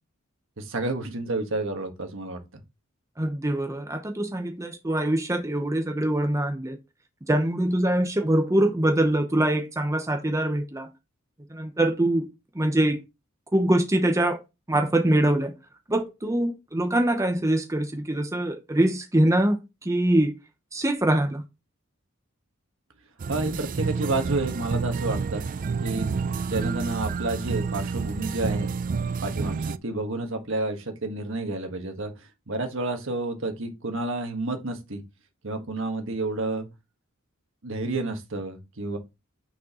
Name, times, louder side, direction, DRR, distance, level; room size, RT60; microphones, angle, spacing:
voice 1, 0.6-2.4 23.3-25.4 25.8-26.1 26.4-28.7 29.2-32.1 32.5-35.0 35.4-36.7 37.6-39.0, right 2 dB, 65° right, 1.5 m, -30 dB
voice 2, 3.2-6.8 7.3-10.9 11.5-12.3 12.5-13.0 13.5-14.4 14.7-15.5 15.9-20.3 20.7-21.4, right 1 dB, 15° right, 0.8 m, -23 dB
sound 1, 23.2-29.8, right 5 dB, 40° right, 0.3 m, -29 dB
6.4 x 6.2 x 3.0 m
head